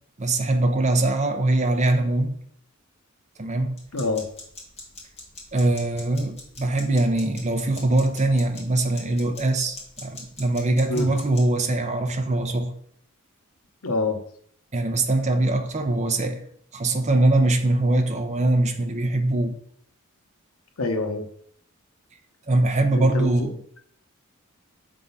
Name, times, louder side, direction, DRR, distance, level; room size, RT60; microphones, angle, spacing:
voice 1, 0.2-2.4 3.4-3.8 5.5-12.7 14.7-16.4 16.7-19.6 22.5-23.5, right 2 dB, 35° right, 0.8 m, -22 dB
sound 1, 3.8-11.4, left 2 dB, 30° left, 1.9 m, -44 dB
voice 2, 3.9-4.3 10.9-11.1 13.8-14.2 20.8-21.2 22.9-23.5, left 2 dB, 85° left, 1.0 m, -26 dB
6.8 x 3.7 x 5.5 m
head